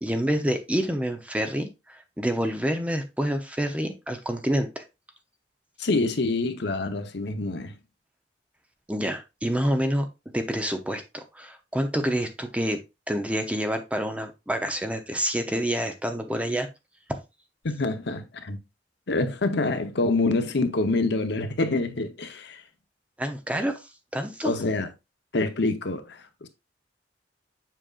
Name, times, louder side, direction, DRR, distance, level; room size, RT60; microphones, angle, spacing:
voice 1, 0.0-4.8 8.9-10.1 10.3-12.8 13.1-16.7 23.2-23.8 24.1-24.5, equal, 5° right, 0.7 m, -27 dB
voice 2, 5.8-7.7 17.6-18.6 19.1-22.6 24.4-24.9 25.3-26.5, left 2 dB, 65° left, 0.9 m, -26 dB
7.6 x 5.2 x 2.4 m
head